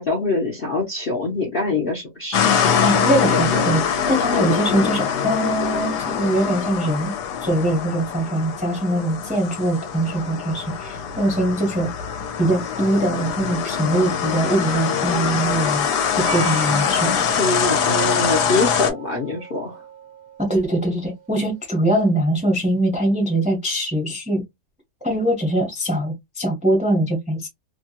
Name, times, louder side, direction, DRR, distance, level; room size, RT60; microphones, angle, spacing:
voice 1, 0.0-3.7 4.3-5.2 17.4-19.8, left 3 dB, 45° left, 0.7 m, -25 dB
sound 1, 2.3-18.9, left 7 dB, 75° left, 1.2 m, -23 dB
voice 2, 2.8-7.1 7.4-11.9 12.4-17.1 20.4-24.4 25.0-27.5, right 1 dB, 5° right, 0.7 m, -22 dB
Percussion, 16.2-20.6, right 6 dB, 55° right, 1.1 m, -36 dB
2.9 x 2.2 x 2.8 m
omnidirectional pair, 1.8 m